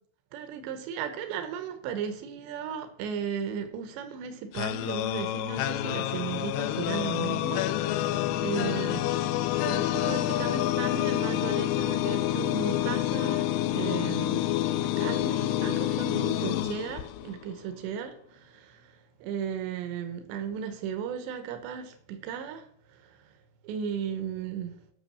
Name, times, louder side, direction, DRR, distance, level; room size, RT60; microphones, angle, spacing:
voice 1, 0.3-14.5 15.0-18.9 19.2-23.2 23.6-24.8, right 7 dB, 85° right, 3.4 m, -36 dB
sound 1, 4.5-17.5, left 13 dB, 80° left, 2.4 m, -28 dB
11.5 x 6.6 x 6.9 m
omnidirectional pair, 5.0 m